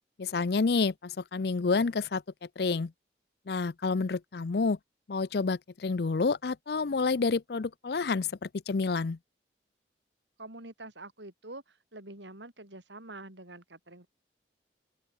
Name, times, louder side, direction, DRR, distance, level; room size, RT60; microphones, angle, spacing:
voice 1, 0.2-2.2 2.6-2.9 3.5-4.8 5.1-9.2, left 4 dB, 60° left, 0.5 m, -29 dB
voice 2, 10.4-14.1, right 2 dB, 85° right, 6.4 m, -46 dB
open air
head